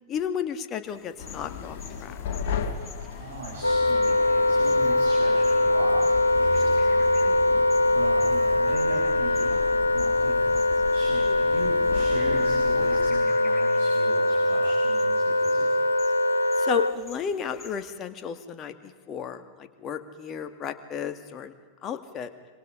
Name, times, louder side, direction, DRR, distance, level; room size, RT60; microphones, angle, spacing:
voice 1, 0.1-2.1 7.2-7.6 16.6-21.5 21.8-22.3, left 8 dB, 30° left, 8 dB, 2.1 m, -33 dB
sound 1, 0.9-17.9, left 4 dB, 10° left, 5.9 m, -51 dB
sound 2, 1.2-13.1, left 6 dB, 50° left, 2.8 m, -37 dB
voice 2, 3.2-7.6 7.9-9.4 9.9-10.4 10.9-15.6, right 3 dB, 60° right, -2 dB, 6.4 m, -39 dB
Wind instrument woodwind instrument, 3.6-17.0, left 2 dB, 80° left, 0.9 m, -22 dB
27.0 x 25.5 x 5.1 m, 1.4 s
figure-of-eight pair, 90°, 0 cm